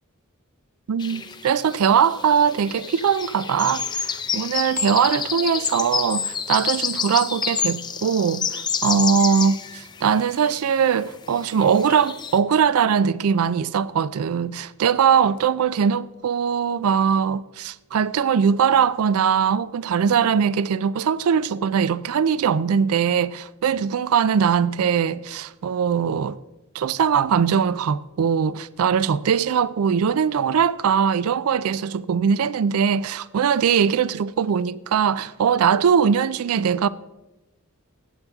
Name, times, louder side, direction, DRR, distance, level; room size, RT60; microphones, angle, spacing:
voice 1, 0.9-26.4 26.7-36.9, right 7 dB, 75° right, 0.4 m, -21 dB
sound 1, 1.0-11.0 11.3-12.4, left 6 dB, 20° left, 0.5 m, -29 dB
16.0 x 8.2 x 3.5 m
head